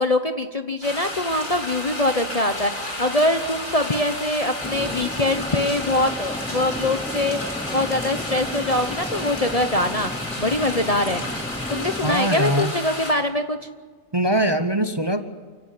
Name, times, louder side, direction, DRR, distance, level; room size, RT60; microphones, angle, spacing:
voice 1, 0.0-10.1 10.4-11.2 11.7-13.6, left 1 dB, 30° left, 7 dB, 0.8 m, -23 dB
sound 1, 0.8-13.1, left 1 dB, 70° left, 5.2 m, -32 dB
sound 2, 4.6-12.2, left 1 dB, 10° left, 0.4 m, -34 dB
voice 2, 12.0-12.7 14.1-15.2, right 1 dB, 20° right, 8 dB, 0.9 m, -22 dB
29.0 x 16.5 x 8.6 m, 1.5 s
omnidirectional pair, 1.4 m